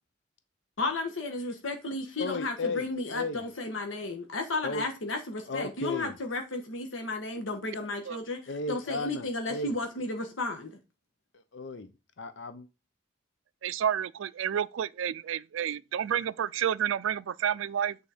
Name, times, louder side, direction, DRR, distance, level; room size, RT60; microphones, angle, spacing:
voice 1, 0.8-8.4 8.7-10.7, left 2 dB, 85° left, 1.3 m, -33 dB
voice 2, 2.2-2.9 3.1-3.4 4.6-4.9 5.5-6.2 8.5-9.8 11.3-11.9 12.2-12.7, left 2 dB, 65° left, 0.7 m, -35 dB
voice 3, 13.6-18.0, right 9 dB, 85° right, 0.4 m, -30 dB
8.5 x 4.2 x 4.9 m
head